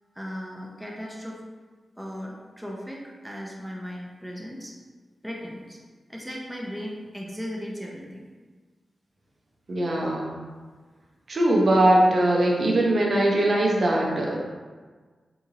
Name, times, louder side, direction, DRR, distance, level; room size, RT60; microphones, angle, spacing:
voice 1, 0.2-1.4 2.0-4.8 5.2-5.8 6.1-8.3, equal, 5° right, -2 dB, 0.4 m, -37 dB
voice 2, 9.7-10.4 11.3-14.4, right 1 dB, 55° right, -2 dB, 0.6 m, -21 dB
3.7 x 2.8 x 2.7 m, 1.4 s
wide cardioid pair, 110°, 0 cm